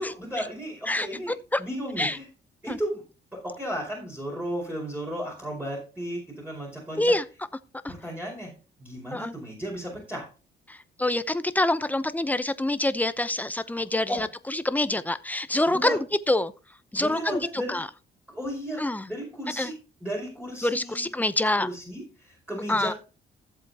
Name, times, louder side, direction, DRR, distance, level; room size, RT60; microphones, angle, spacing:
voice 1, 0.0-2.3 2.6-3.0 3.3-7.1 7.9-8.5 8.8-10.3 13.7-13.8 14.1-14.2 15.7-16.0 17.0-17.8 18.3-21.1 21.6-23.0, equal, 10° right, 5.0 m, -34 dB
voice 2, 11.0-16.5 16.9-17.4 17.7-17.9 18.8-19.0 19.6-19.7 20.6-21.7 22.7-22.9, left 1 dB, 10° left, 0.8 m, -26 dB
14.0 x 7.9 x 2.9 m
cardioid pair, 90°, 20 cm